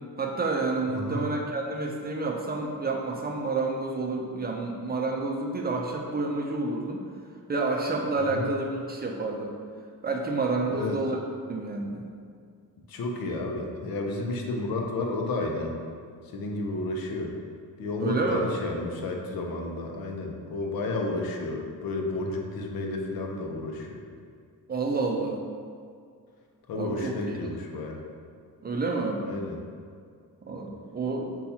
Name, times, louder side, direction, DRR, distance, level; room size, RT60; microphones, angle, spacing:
voice 1, 0.2-7.0 7.5-9.5 10.0-11.2 11.5-12.0 18.0-18.5 24.7-25.4 26.7-27.4 28.6-29.2 30.5-31.4, right 3 dB, 30° right, 0 dB, 0.4 m, -29 dB
voice 2, 0.9-1.3 8.3-8.5 10.7-11.0 12.9-15.8 16.3-17.3 17.8-24.0 26.7-28.0 29.2-29.6, left 2 dB, 80° left, 1 dB, 0.6 m, -31 dB
5.4 x 2.3 x 2.7 m, 2.2 s
cardioid pair, 105°, 35 cm